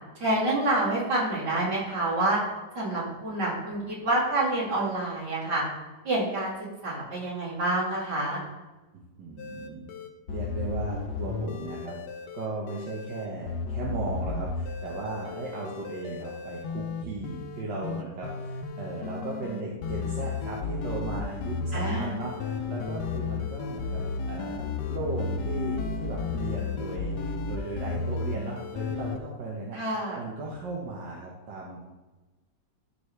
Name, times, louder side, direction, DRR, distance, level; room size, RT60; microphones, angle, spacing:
voice 1, 0.2-2.4 2.7-5.6 6.0-8.4 21.7-22.2 29.7-30.3, right 2 dB, 70° right, -5 dB, 3.2 m, -28 dB
voice 2, 8.9-9.9 10.3-12.0 12.3-24.0 24.3-29.8 30.1-31.8, right 3 dB, 85° right, -4 dB, 1.9 m, -36 dB
sound 1, 9.4-29.2, left 4 dB, 75° left, 1.3 m, -33 dB
13.5 x 4.9 x 3.3 m, 1.2 s
omnidirectional pair, 1.9 m